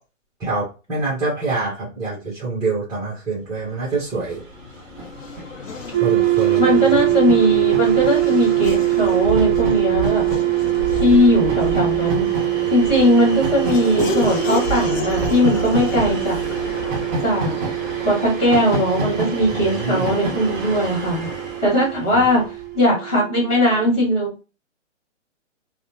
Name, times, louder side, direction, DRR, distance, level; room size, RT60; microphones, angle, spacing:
voice 1, 0.4-4.4 6.0-6.8 19.5-20.1 22.1-22.2, right 3 dB, 10° right, -9 dB, 0.7 m, -26 dB
Train, 4.0-4.1 4.2-22.6, right 1 dB, 35° right, 1.3 m, -31 dB
Race car auto racing / Accelerating revving vroom, 4.2-19.8, left 1 dB, 90° left, 0.7 m, -31 dB
sound 1, 5.9-23.9, right 19 dB, 50° right, 0.6 m, -23 dB
voice 2, 6.6-10.3 11.0-12.3 12.7-16.4 17.2-17.5 18.0-21.3 21.6-22.5 22.7-24.4, equal, 15° left, -4 dB, 1.5 m, -19 dB
2.8 x 2.0 x 2.7 m, 0.32 s
hypercardioid pair, 135°, 38 cm